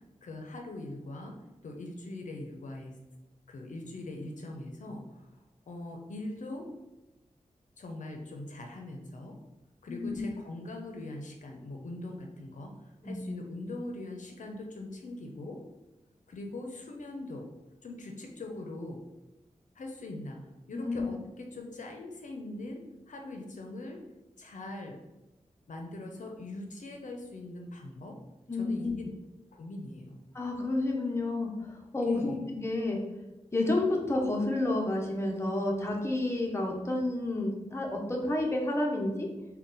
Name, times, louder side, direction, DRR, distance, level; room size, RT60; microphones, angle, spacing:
voice 1, 0.2-1.3 1.6-3.0 3.5-5.3 5.7-6.7 7.8-9.3 9.8-15.6 16.3-17.5 17.8-19.0 19.8-20.4 20.7-24.0 24.4-25.0 25.7-28.2 28.5-29.1 29.5-30.2 32.0-32.4, left 2 dB, 70° left, 2 dB, 0.5 m, -41 dB
voice 2, 9.9-10.2 13.0-13.2 20.7-21.0 28.5-28.9 30.3-33.0 33.5-39.3, left 2 dB, 20° left, 0 dB, 0.7 m, -30 dB
3.8 x 2.2 x 3.8 m, 1.0 s
wide cardioid pair, 85°, 13 cm